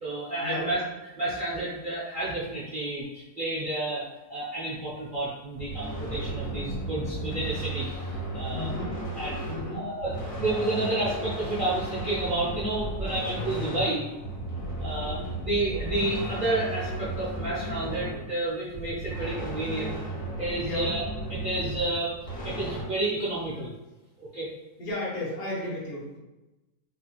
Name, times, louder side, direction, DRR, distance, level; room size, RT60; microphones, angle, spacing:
voice 1, 0.0-0.8 1.2-8.7 9.2-9.4 9.7-14.0 14.8-20.0 20.4-21.0 21.3-22.1 22.4-23.7 24.2-24.5, right 2 dB, 50° right, -8 dB, 0.6 m, -30 dB
sound 1, 5.5-22.8, right 1 dB, 40° left, 0.5 m, -34 dB
voice 2, 8.5-8.9 9.5-9.9 20.6-20.9 24.8-26.2, left 1 dB, 70° left, -5 dB, 1.4 m, -33 dB
3.2 x 2.4 x 2.9 m, 1.0 s
omnidirectional pair, 1.7 m